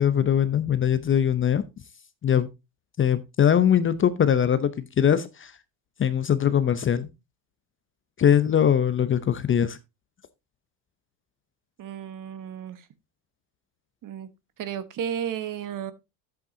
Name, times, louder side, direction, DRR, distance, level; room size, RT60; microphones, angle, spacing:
voice 1, 0.0-1.6 2.2-2.5 3.0-5.5 6.0-7.1 8.2-9.8, left 9 dB, 25° left, 0.7 m, -21 dB
voice 2, 11.8-12.9 14.0-14.3 14.6-15.9, right 9 dB, 40° right, 1.2 m, -33 dB
10.5 x 8.5 x 2.7 m
supercardioid pair, 105°, 47 cm